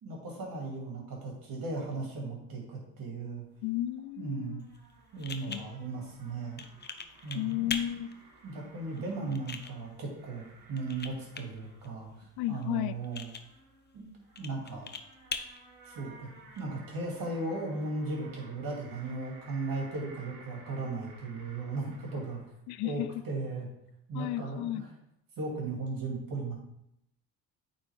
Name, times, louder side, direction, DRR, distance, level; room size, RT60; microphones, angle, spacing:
voice 1, 0.0-3.4 4.2-4.6 5.1-6.6 7.2-7.8 8.4-12.1 12.5-13.3 13.9-14.0 14.4-14.9 15.8-16.3 16.6-22.4 22.8-23.7 24.1-24.9 25.4-26.5, right 3 dB, 55° right, -1 dB, 2.8 m, -36 dB
sound 1, 3.4-22.5, right 3 dB, 85° right, 1.8 m, -57 dB
voice 2, 3.6-4.6 5.5-5.7 7.3-8.1 12.4-13.0 22.7-23.1 24.1-24.8, left 14 dB, 65° left, 15 dB, 0.5 m, -33 dB
sound 2, 4.6-16.6, left 5 dB, 25° left, 0.7 m, -44 dB
8.7 x 4.3 x 3.6 m, 0.79 s
supercardioid pair, 65°, 40 cm